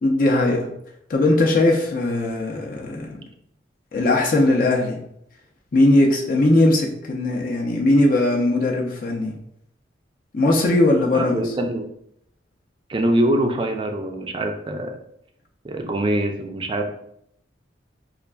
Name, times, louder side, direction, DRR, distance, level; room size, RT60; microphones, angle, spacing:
voice 1, 0.0-0.7 1.1-3.2 3.9-5.0 5.7-9.3 10.3-11.5, left 2 dB, 45° left, -1 dB, 0.5 m, -19 dB
voice 2, 11.1-11.9 12.9-15.0 15.6-16.9, right 1 dB, 25° right, 4 dB, 0.3 m, -23 dB
5.0 x 2.4 x 2.2 m, 0.75 s
head